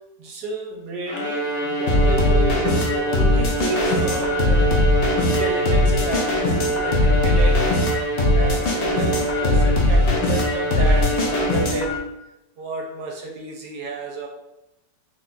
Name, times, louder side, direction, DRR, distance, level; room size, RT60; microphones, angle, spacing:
voice 1, 0.2-4.8 5.2-7.6 8.3-12.0 12.6-14.3, right 3 dB, 75° right, 1 dB, 1.1 m, -31 dB
Bowed string instrument, 1.1-12.1, right 1 dB, 55° left, 0.8 m, -25 dB
sound 1, 1.9-12.0, left 2 dB, 85° left, 0.5 m, -20 dB
3.4 x 2.3 x 3.9 m, 0.92 s
omnidirectional pair, 1.8 m